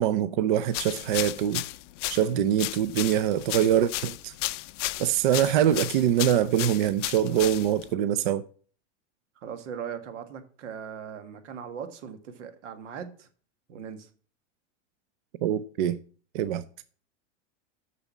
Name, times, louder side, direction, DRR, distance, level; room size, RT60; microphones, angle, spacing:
voice 1, 0.0-1.6 2.1-4.3 5.0-8.4 15.4-16.0 16.3-16.6, right 10 dB, 45° right, 0.5 m, -24 dB
sound 1, 0.7-7.9, left 17 dB, 80° left, 0.5 m, -34 dB
voice 2, 9.4-13.3 13.7-14.1, right 7 dB, 85° right, 1.7 m, -39 dB
6.9 x 6.3 x 7.1 m
supercardioid pair, 175°, 36 cm